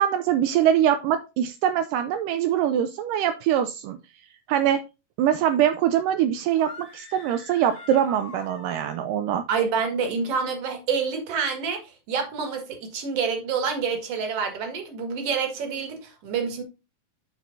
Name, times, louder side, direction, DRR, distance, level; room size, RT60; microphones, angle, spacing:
voice 1, 0.0-4.0 4.5-4.8 5.2-9.4, right 10 dB, 80° right, 2.1 m, -23 dB
sound 1, 6.5-9.1, left 2 dB, 20° left, 0.9 m, -43 dB
voice 2, 9.5-16.6, right 5 dB, 50° right, 2.5 m, -27 dB
13.0 x 4.4 x 2.6 m
omnidirectional pair, 4.1 m